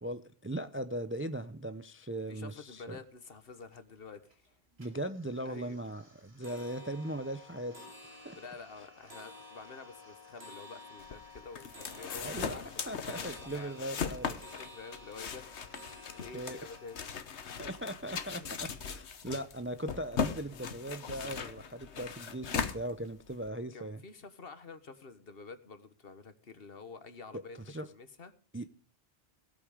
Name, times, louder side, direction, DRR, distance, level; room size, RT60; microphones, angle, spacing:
voice 1, 0.0-3.0 4.8-7.9 8.2-8.4 12.2-14.4 16.3-16.6 17.6-24.0 27.7-27.9 28.5-28.7, right 1 dB, 15° right, 11 dB, 0.5 m, -39 dB
voice 2, 2.3-4.5 5.4-5.8 8.1-15.5 16.2-17.6 18.3-18.5 23.7-28.3, left 4 dB, 60° left, 11 dB, 1.5 m, -49 dB
sound 1, 2.8-2.9 3.2-3.8 4.2-4.5 4.8-17.1, left 2 dB, 65° right, 3.6 m, -52 dB
sound 2, 11.0-23.5, left 6 dB, 80° left, 1.3 m, -39 dB
17.5 x 8.8 x 4.9 m, 0.39 s
omnidirectional pair, 1.1 m